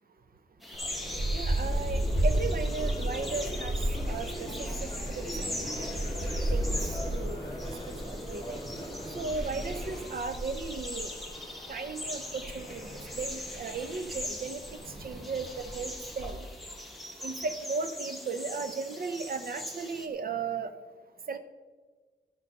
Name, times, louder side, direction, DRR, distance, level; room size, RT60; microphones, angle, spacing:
sound 1, 0.6-20.1, left 1 dB, ahead, 1.2 m, -42 dB
sound 2, 0.7-16.3, right 1 dB, 40° right, 3.7 m, -34 dB
voice 1, 1.3-3.7 4.1-5.9 6.5-6.8 7.1-7.4 8.0-8.6 9.1-11.1 11.7-14.6 15.0-16.5 17.2-20.7 21.3-21.4, right 4 dB, 60° right, 10 dB, 0.8 m, -36 dB
sound 3, 1.5-10.1, equal, 25° left, 2.5 m, -40 dB
14.0 x 6.9 x 5.3 m, 1.4 s
wide cardioid pair, 165°, 17 cm